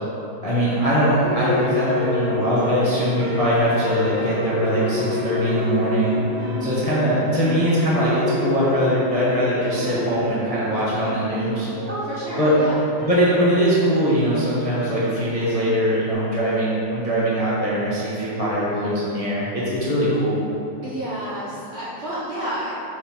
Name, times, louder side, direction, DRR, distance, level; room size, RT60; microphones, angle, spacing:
voice 1, 0.4-6.2 6.6-11.7 12.4-12.6 13.0-20.4, equal, 30° left, -9 dB, 0.7 m, -21 dB
sound 1, 0.5-16.1, left 2 dB, 85° right, 1.6 m, -29 dB
voice 2, 11.9-12.8 20.8-22.7, right 1 dB, 50° right, -8 dB, 0.8 m, -30 dB
6.5 x 3.8 x 4.2 m, 2.9 s
omnidirectional pair, 2.0 m